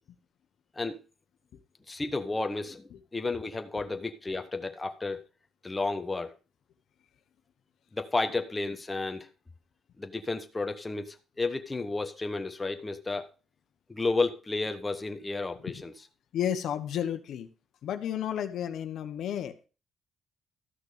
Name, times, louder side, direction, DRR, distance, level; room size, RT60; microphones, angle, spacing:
voice 1, 1.9-5.2 5.6-6.3 7.9-9.3 10.0-13.3 13.9-15.9, left 3 dB, 20° left, 1.2 m, -32 dB
voice 2, 16.3-17.5 17.8-19.7, left 10 dB, 75° left, 1.2 m, -32 dB
13.5 x 6.1 x 5.1 m
cardioid pair, 90°, 0 cm